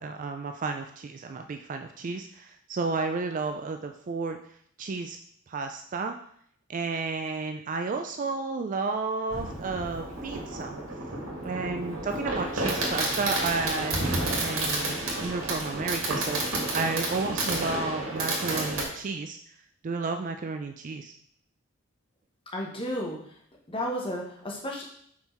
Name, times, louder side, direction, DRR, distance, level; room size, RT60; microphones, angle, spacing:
voice 1, 0.0-4.4 4.8-5.2 5.5-6.2 6.7-10.8 11.4-14.1 14.4-19.5 19.8-21.1, right 4 dB, 40° right, 5 dB, 0.3 m, -32 dB
Fireworks, 9.3-18.8, right 2 dB, 90° right, 1.9 m, -30 dB
voice 2, 22.5-23.2 23.7-24.8, equal, 25° left, -2 dB, 1.1 m, -32 dB
5.6 x 4.4 x 4.4 m, 0.65 s
head